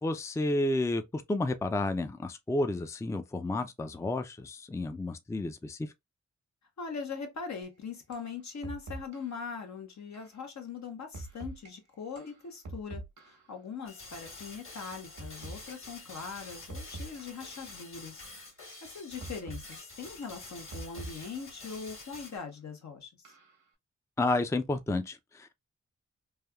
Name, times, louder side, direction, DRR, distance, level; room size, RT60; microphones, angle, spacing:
voice 1, 0.0-5.9 24.2-25.5, left 2 dB, 10° left, 0.4 m, -31 dB
voice 2, 6.8-18.3 18.8-23.3, left 5 dB, 65° left, 1.0 m, -41 dB
sound 1, 7.6-7.7 8.1-8.3 8.6-9.4 10.1-10.4 11.1-11.7 12.2-13.5 14.2-14.4 15.2-15.7 16.2-16.4 16.7-17.5 18.2-18.5 19.2-19.8 20.2-21.5 22.2-22.4 23.3-23.6, right 2 dB, 85° right, 1.0 m, -44 dB
sound 2, 13.8-22.4, left 3 dB, 45° left, 1.7 m, -48 dB
3.3 x 2.3 x 2.3 m
supercardioid pair, 40°, 30 cm